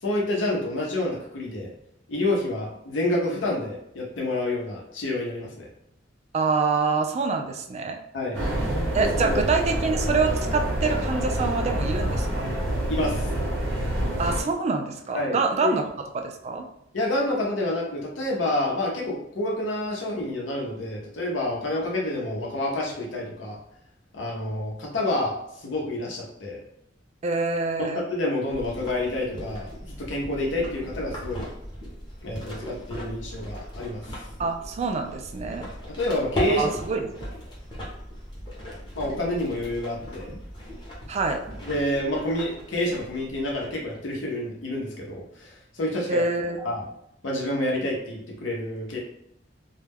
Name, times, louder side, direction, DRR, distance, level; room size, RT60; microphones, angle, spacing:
voice 1, 0.0-1.7 2.1-5.7 8.1-8.4 9.0-9.4 12.9-13.3 15.1-15.8 16.9-23.6 24.1-26.6 27.8-31.5 32.2-34.1 35.6-36.7 38.9-40.3 41.6-46.2 46.6-46.8 47.2-49.0, left 1 dB, 80° left, -2 dB, 0.7 m, -28 dB
voice 2, 6.3-8.0 8.9-12.4 14.2-15.8 16.1-16.6 27.2-28.0 34.4-35.7 36.6-37.1 41.1-41.4 46.1-46.6, right 4 dB, 35° right, 4 dB, 0.3 m, -26 dB
sound 1, 8.3-14.4, right 1 dB, 75° right, 0.7 m, -27 dB
sound 2, 28.5-44.0, equal, 25° left, 0.8 m, -37 dB
2.2 x 2.1 x 3.3 m, 0.77 s
head